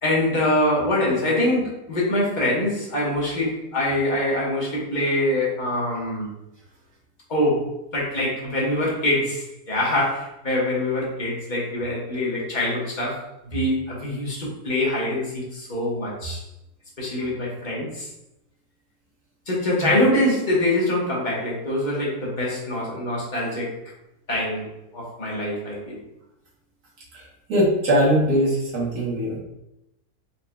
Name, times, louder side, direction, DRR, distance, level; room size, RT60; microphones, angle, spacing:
voice 1, 0.0-6.3 7.3-7.7 7.9-16.5 17.0-18.1 19.5-23.8 24.3-26.0, left 1 dB, 30° left, -5 dB, 1.2 m, -24 dB
voice 2, 27.1-29.4, equal, 75° right, -6 dB, 1.7 m, -21 dB
4.3 x 3.8 x 2.3 m, 0.89 s
omnidirectional pair, 1.6 m